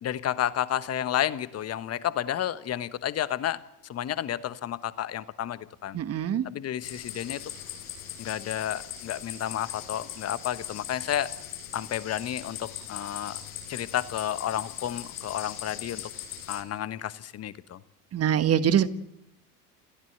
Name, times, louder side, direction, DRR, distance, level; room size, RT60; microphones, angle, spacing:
voice 1, 0.0-6.0 6.4-7.4 8.2-11.3 11.7-13.4 13.7-16.0 16.5-17.8, left 11 dB, 30° left, 14 dB, 1.3 m, -31 dB
voice 2, 5.9-6.5 18.1-18.9, right 9 dB, 30° right, 13 dB, 1.4 m, -23 dB
sound 1, 6.8-16.6, left 10 dB, 70° left, 5.0 m, -40 dB
28.0 x 15.5 x 8.1 m, 0.85 s
figure-of-eight pair, 70°, 47 cm